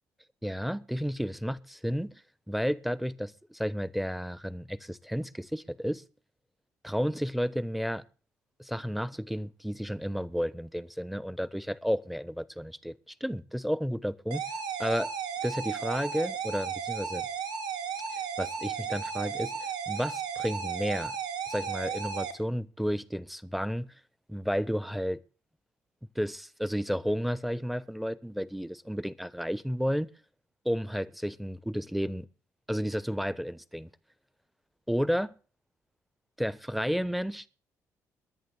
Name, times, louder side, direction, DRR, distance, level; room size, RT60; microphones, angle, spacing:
voice 1, 0.4-2.2 2.5-6.0 6.8-8.0 8.6-14.4 14.8-15.1 15.4-17.3 18.1-21.2 21.5-23.9 24.3-25.2 26.1-30.1 30.6-32.3 32.7-33.9 34.9-35.3 36.4-37.4, equal, ahead, 1.1 m, -32 dB
sound 1, 14.3-22.3, right 7 dB, 60° right, 3.8 m, -34 dB
22.5 x 9.4 x 3.5 m
hypercardioid pair, 45°, 8 cm